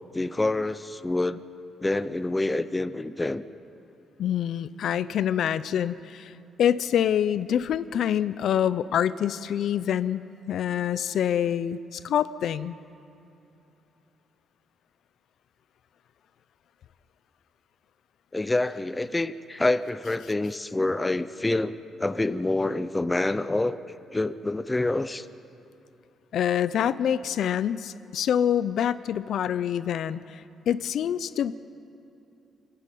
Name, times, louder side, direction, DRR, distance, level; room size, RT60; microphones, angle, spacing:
voice 1, 0.1-1.4 1.8-3.4 18.3-23.8 24.1-25.3, left 2 dB, 10° left, 12 dB, 0.5 m, -27 dB
voice 2, 4.2-12.7 26.3-31.5, left 9 dB, 65° left, 15 dB, 0.5 m, -26 dB
27.5 x 11.5 x 9.2 m, 2.8 s
cardioid pair, 170°, 0 cm